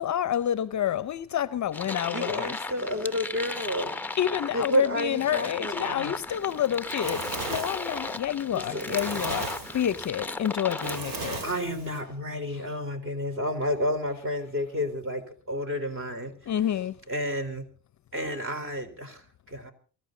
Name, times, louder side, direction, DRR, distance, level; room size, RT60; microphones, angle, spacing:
voice 1, 0.0-2.6 4.2-11.4 16.5-17.0, left 10 dB, 45° left, 0.7 m, -29 dB
sound 1, 1.7-11.0, left 2 dB, 5° left, 0.9 m, -36 dB
voice 2, 2.1-3.9 4.5-6.2 8.5-9.3 11.4-16.5 17.1-17.7 18.1-19.7, equal, 30° right, 4.2 m, -31 dB
Fire, 6.5-12.0, right 3 dB, 55° right, 3.3 m, -36 dB
24.0 x 14.5 x 3.9 m
cardioid pair, 115°, 41 cm